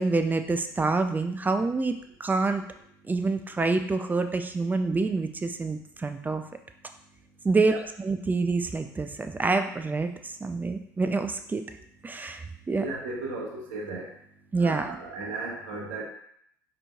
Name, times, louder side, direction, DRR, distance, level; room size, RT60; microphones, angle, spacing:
voice 1, 0.0-2.6 3.1-6.4 7.4-11.6 12.0-12.8 14.5-15.0, right 3 dB, 20° right, 7 dB, 0.4 m, -27 dB
voice 2, 12.7-14.1 14.6-16.0, right 3 dB, 70° right, -2 dB, 0.9 m, -35 dB
4.9 x 3.1 x 2.4 m, 0.69 s
hypercardioid pair, 70°, 9 cm